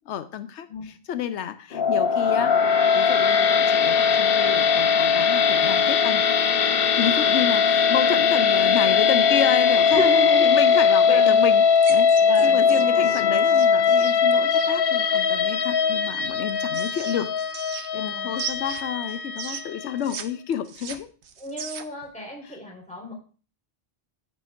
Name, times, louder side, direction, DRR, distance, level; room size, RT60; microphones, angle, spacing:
voice 1, 0.1-2.6 2.9-6.2 7.0-10.0 10.4-17.3 17.7-21.1 22.4-22.6, left 9 dB, 85° left, 11 dB, 0.9 m, -30 dB
sound 1, 1.7-20.0, left 6 dB, 60° left, 0.9 m, -20 dB
voice 2, 9.9-11.4 12.2-12.6 17.9-18.3 21.4-23.1, left 1 dB, 5° left, -3 dB, 4.5 m, -32 dB
sound 2, 11.8-14.8 16.2-18.1 18.4-20.2 20.5-22.0, right 7 dB, 80° right, 1.1 m, -37 dB
14.5 x 7.2 x 2.5 m, 0.37 s
omnidirectional pair, 1.1 m